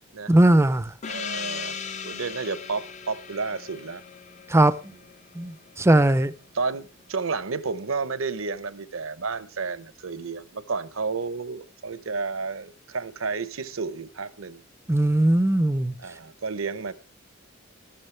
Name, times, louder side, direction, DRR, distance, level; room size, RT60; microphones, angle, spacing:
voice 1, 0.3-0.9 4.5-4.8 5.4-6.3 14.9-15.9, right 1 dB, 15° right, 0.5 m, -19 dB
Gong, 1.0-6.1, left 6 dB, 35° left, 0.6 m, -38 dB
voice 2, 1.1-1.8 2.0-4.0 6.5-14.6 16.0-16.9, right 4 dB, 70° right, 0.9 m, -31 dB
14.5 x 12.5 x 3.3 m
head